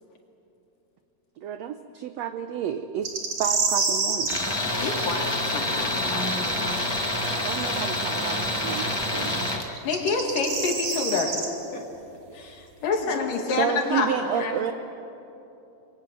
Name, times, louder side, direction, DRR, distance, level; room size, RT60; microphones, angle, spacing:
voice 1, 1.4-3.1 3.4-4.4 7.4-9.4 13.6-14.7, right 8 dB, 80° right, 9 dB, 1.5 m, -30 dB
sound 1, 3.0-4.4 7.6-7.7 9.8-11.5, right 4 dB, 55° right, 3.7 m, -27 dB
Tools, 4.3-9.7, left 1 dB, 15° left, 0.8 m, -27 dB
voice 2, 4.8-7.2 9.7-9.8 11.7-11.8 12.3-13.3 14.3-14.7, left 3 dB, 50° left, 2 dB, 3.2 m, -36 dB
voice 3, 9.8-11.4 12.8-14.1, left 4 dB, 75° left, 2 dB, 4.0 m, -25 dB
27.0 x 23.5 x 7.7 m, 3.0 s
omnidirectional pair, 3.9 m